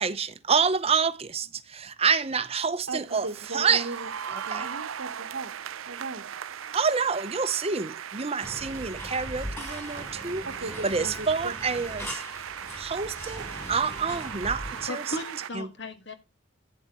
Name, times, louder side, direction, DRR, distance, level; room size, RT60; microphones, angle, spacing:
voice 1, 0.0-3.9 4.3-4.7 6.7-10.5 10.8-12.2 12.8-15.0 15.5-15.7, right 5 dB, 30° right, 0.7 m, -28 dB
voice 2, 2.9-5.5 5.9-6.3 10.4-11.5, right 3 dB, 75° right, 1.1 m, -37 dB
sound 1, 3.1-15.5, right 8 dB, 90° right, 0.5 m, -38 dB
sound 2, 8.4-14.9, equal, 10° left, 3.7 m, -40 dB
voice 3, 14.9-16.1, left 1 dB, 60° left, 1.8 m, -36 dB
11.0 x 9.6 x 3.0 m
head